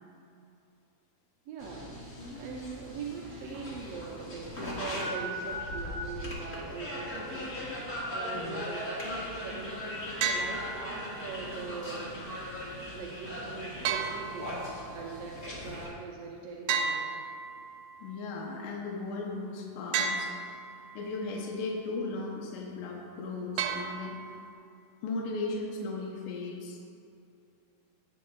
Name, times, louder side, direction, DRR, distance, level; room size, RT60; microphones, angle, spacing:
voice 1, 1.5-1.9 2.3-12.1 12.9-17.2, right 5 dB, 70° right, -3 dB, 1.6 m, -42 dB
sound 1, 1.6-15.9, left 1 dB, 35° left, 1.8 m, -39 dB
voice 2, 8.3-8.6 18.0-24.4 25.0-26.8, left 3 dB, 80° left, -1 dB, 2.5 m, -37 dB
sound 2, 10.2-11.2 13.8-14.9 16.7-17.9 19.9-20.9 23.6-24.5, right 5 dB, 90° right, 2.2 m, -33 dB
17.5 x 8.9 x 2.4 m, 2.6 s
omnidirectional pair, 3.7 m